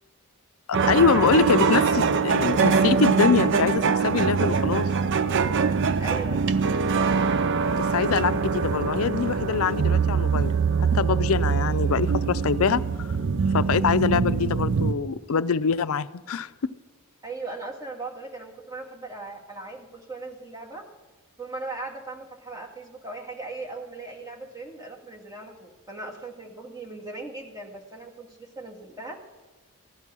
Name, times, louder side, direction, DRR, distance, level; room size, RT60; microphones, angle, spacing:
voice 1, 0.7-4.9 7.8-10.5 10.8-13.1 13.5-16.5, left 6 dB, 65° left, 13 dB, 0.5 m, -24 dB
sound 1, 0.7-14.9, right 5 dB, 55° right, 0.5 m, -23 dB
voice 2, 5.5-6.5 17.2-20.9 21.4-29.2, right 3 dB, 15° right, 0 dB, 1.9 m, -38 dB
15.5 x 11.0 x 6.1 m, 1.2 s
head